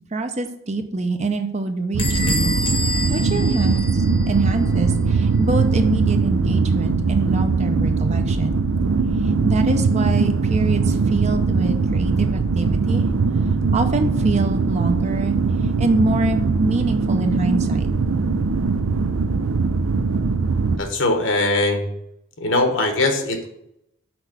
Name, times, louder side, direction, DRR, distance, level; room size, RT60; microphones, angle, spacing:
voice 1, 0.1-2.5 3.1-8.6 9.2-13.1 13.7-17.9, right 2 dB, 30° right, 6 dB, 0.6 m, -25 dB
sound 1, 1.9-20.8, right 4 dB, 75° right, 0.5 m, -20 dB
Bell / Squeak, 2.0-4.5, left 1 dB, 25° left, 0.9 m, -28 dB
voice 2, 20.8-21.9 22.4-23.5, left 2 dB, 60° left, 5 dB, 1.1 m, -21 dB
6.1 x 4.7 x 6.6 m, 0.81 s
head